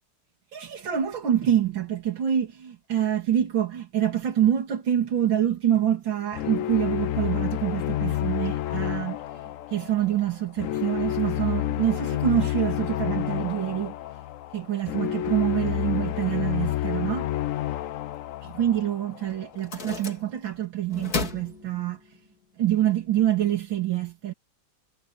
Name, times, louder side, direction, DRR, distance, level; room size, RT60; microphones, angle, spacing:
voice 1, 0.5-9.2 9.7-13.9 14.5-17.3 18.4-22.0 22.6-24.3, right 10 dB, 85° right, 3.0 m, -26 dB
sound 1, 6.3-19.4, left 13 dB, 85° left, 0.7 m, -29 dB
sound 2, 19.5-20.6 20.9-22.3, left 5 dB, 50° left, 3.0 m, -34 dB
omnidirectional pair, 2.0 m